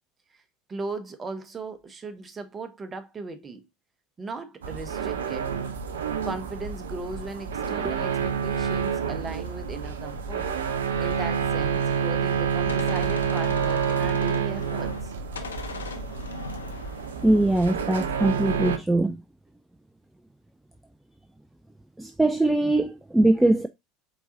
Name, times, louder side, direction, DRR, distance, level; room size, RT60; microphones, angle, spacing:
voice 1, 0.7-3.7 4.2-5.6 6.2-10.5 11.0-15.1, right 3 dB, 25° right, 0.9 m, -37 dB
sound 1, 4.6-18.8, right 6 dB, 75° right, 0.6 m, -28 dB
Gunshot gunfire, 12.7-15.1 15.4-18.1, left 5 dB, 80° left, 0.6 m, -40 dB
voice 2, 17.2-19.2 22.0-23.7, right 2 dB, 5° right, 0.4 m, -21 dB
4.5 x 3.9 x 2.6 m
figure-of-eight pair, 75°, 0 cm